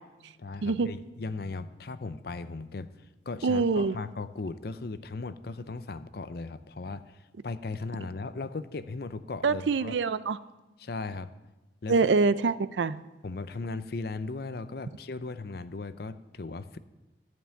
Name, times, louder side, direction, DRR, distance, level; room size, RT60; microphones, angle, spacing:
voice 1, 0.4-2.9 3.3-7.2 7.4-9.9 10.8-11.3 11.8-12.0 13.2-16.8, left 3 dB, 55° left, 13 dB, 0.6 m, -37 dB
voice 2, 3.4-4.0 9.4-10.4 11.9-13.0, right 4 dB, 80° right, 16 dB, 0.5 m, -25 dB
12.5 x 5.4 x 8.9 m, 1.1 s
head